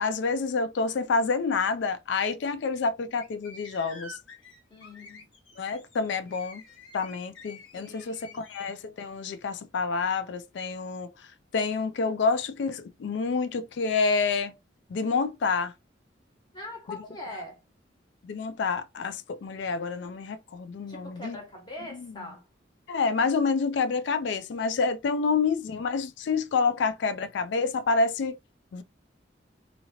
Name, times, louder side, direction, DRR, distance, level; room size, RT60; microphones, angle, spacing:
voice 1, 0.0-4.2 5.6-6.6 6.9-11.3 11.5-14.5 14.9-15.7 16.9-17.0 18.2-21.4 22.9-28.4 28.7-28.8, left 4 dB, 65° left, 0.3 m, -28 dB
sound 1, 3.1-8.7, left 3 dB, 85° left, 1.4 m, -49 dB
voice 2, 4.7-5.3 7.7-8.5 16.5-17.6 20.9-22.5, left 2 dB, 25° left, 1.2 m, -42 dB
2.9 x 2.8 x 2.7 m
head